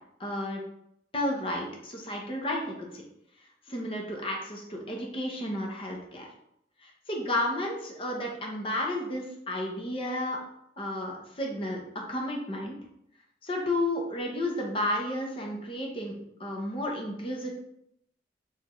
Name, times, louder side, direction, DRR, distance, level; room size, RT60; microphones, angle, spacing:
voice 1, 0.2-0.6 1.1-3.0 3.7-6.3 6.8-10.4 10.8-11.8 12.1-12.8 13.4-17.6, left 1 dB, 30° left, 0 dB, 0.9 m, -32 dB
4.3 x 3.5 x 3.1 m, 0.76 s
head